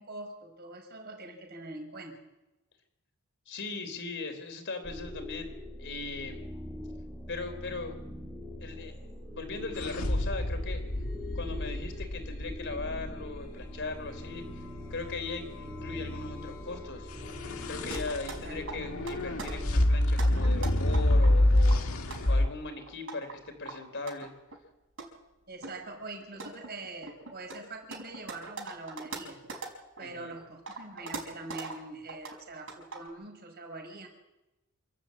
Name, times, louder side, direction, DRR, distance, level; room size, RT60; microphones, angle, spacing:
voice 1, 0.0-2.2 18.4-18.7 25.5-29.5 30.0-34.1, right 2 dB, 50° right, 3 dB, 5.1 m, -43 dB
voice 2, 3.5-6.4 7.3-8.0 8.6-10.8 11.4-14.6 14.9-17.1 17.7-21.9 22.3-24.3 30.0-30.3, left 3 dB, 60° left, 7 dB, 3.9 m, -39 dB
sound 1, 4.8-19.6, left 1 dB, ahead, 2.0 m, -43 dB
sound 2, 9.8-13.8 17.1-22.5, left 1 dB, 75° left, 1.9 m, -27 dB
sound 3, 17.9-18.4 18.7-19.5 20.0-21.3 21.7-23.3 23.6-24.6 25.0-25.1 25.6-25.8 26.2-30.0 30.4-31.8 32.1-32.4 32.7-33.1, right 3 dB, 65° right, 5.2 m, -41 dB
27.5 x 12.0 x 8.5 m, 0.99 s
head